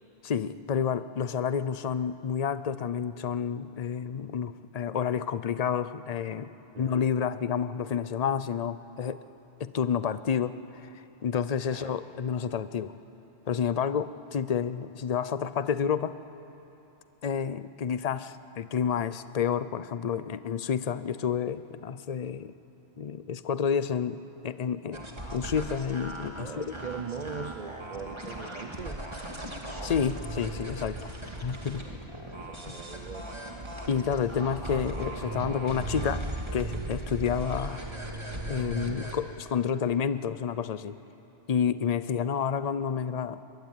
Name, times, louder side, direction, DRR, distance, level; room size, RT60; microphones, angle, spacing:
voice 1, 0.2-6.5 6.8-9.2 9.6-12.9 13.5-16.2 17.2-22.5 23.0-25.0 25.3-26.7 29.8-31.2 31.4-31.9 33.9-36.3 36.5-37.8 38.5-41.0 41.5-43.4, left 7 dB, 40° left, 14 dB, 0.7 m, -30 dB
voice 2, 6.7-7.1 11.7-12.0 26.4-29.0 32.4-33.4, right 6 dB, 40° right, 6 dB, 0.9 m, -40 dB
sound 1, 24.9-39.2, right 1 dB, 25° right, 2.3 m, -37 dB
23.0 x 21.5 x 9.1 m, 3.0 s
omnidirectional pair, 1.1 m